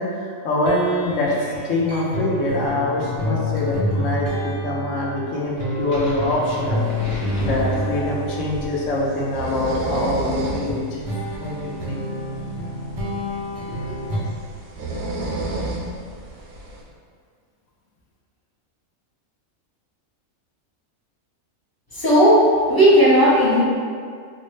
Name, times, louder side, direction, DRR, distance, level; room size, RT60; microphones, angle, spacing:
voice 1, 0.0-6.8 7.4-11.0 11.4-12.0, left 2 dB, 65° left, -3 dB, 1.0 m, -24 dB
sound 1, 0.6-10.0 10.7-14.2, equal, 60° right, 0.3 m, -28 dB
sound 2, 5.6-8.5, left 1 dB, 40° left, 1.1 m, -33 dB
sound 3, 6.7-16.8, right 2 dB, 85° right, 1.1 m, -32 dB
voice 2, 21.9-23.6, equal, 20° left, -9 dB, 0.6 m, -15 dB
4.1 x 2.1 x 3.1 m, 2.1 s
omnidirectional pair, 1.5 m